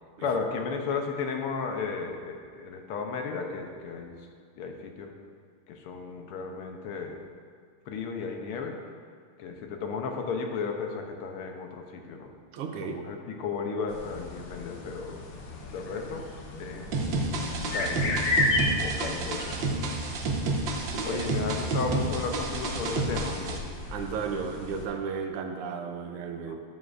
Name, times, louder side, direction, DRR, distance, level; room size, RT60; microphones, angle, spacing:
voice 1, 0.2-4.1 4.6-5.1 5.7-7.2 7.9-8.8 9.4-12.3 12.8-15.2 15.7-16.3 16.6-16.9 17.7-18.4 18.8-19.8 21.0-23.6 26.5-26.6, left 5 dB, 80° left, 3 dB, 1.7 m, -34 dB
voice 2, 12.5-13.0 20.9-21.2 21.7-21.8 23.9-26.6, right 6 dB, 85° right, 5 dB, 1.7 m, -34 dB
sound 1, 13.9-24.9, left 2 dB, 60° left, 1.5 m, -34 dB
sound 2, 16.9-23.6, right 3 dB, 70° right, 1.4 m, -30 dB
12.5 x 7.2 x 2.5 m, 2.1 s
omnidirectional pair, 2.4 m